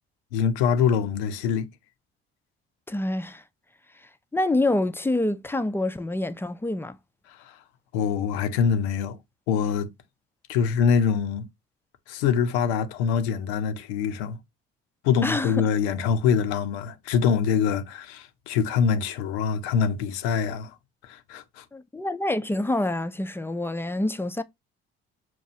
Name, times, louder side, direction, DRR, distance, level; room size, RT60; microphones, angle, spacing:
voice 1, 0.3-1.7 7.3-7.6 7.9-9.2 9.5-9.9 10.5-11.5 12.1-14.4 15.0-20.8 21.0-21.6, left 7 dB, 80° left, 0.6 m, -24 dB
voice 2, 2.9-3.4 4.3-7.0 15.2-15.7 21.7-24.4, left 2 dB, 10° left, 0.4 m, -26 dB
5.9 x 2.3 x 2.6 m
hypercardioid pair, 55°, 32 cm